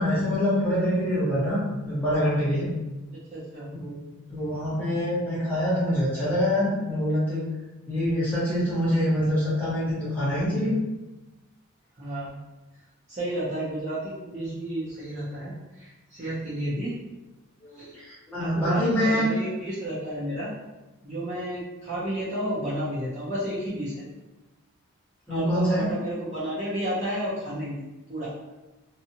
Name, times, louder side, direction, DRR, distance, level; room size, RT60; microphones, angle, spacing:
voice 1, 0.0-2.7 3.8-3.9 4.3-7.4 7.9-10.7 17.6-19.3 25.3-25.9, equal, 10° left, -10 dB, 1.1 m, -25 dB
voice 2, 3.3-3.7 12.0-12.4 13.1-16.9 17.7-17.9 18.4-20.5 21.0-24.0 25.3-27.8 28.1-28.3, right 1 dB, 30° right, -10 dB, 0.6 m, -31 dB
2.7 x 2.3 x 2.7 m, 1.1 s
head